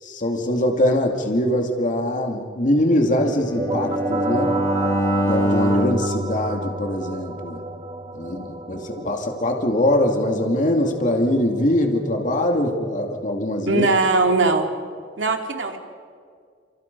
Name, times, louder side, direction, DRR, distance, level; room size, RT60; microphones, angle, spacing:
voice 1, 0.0-4.5 5.2-7.6 8.1-13.9, left 1 dB, 45° left, 2 dB, 2.5 m, -22 dB
Bowed string instrument, 3.2-7.4, equal, 20° left, 2.7 m, -25 dB
sound 1, 3.3-12.7, right 3 dB, 30° right, 1.2 m, -31 dB
voice 2, 13.6-14.7 15.2-15.8, right 3 dB, 75° right, 4 dB, 2.6 m, -20 dB
29.5 x 28.5 x 5.4 m, 2.1 s
head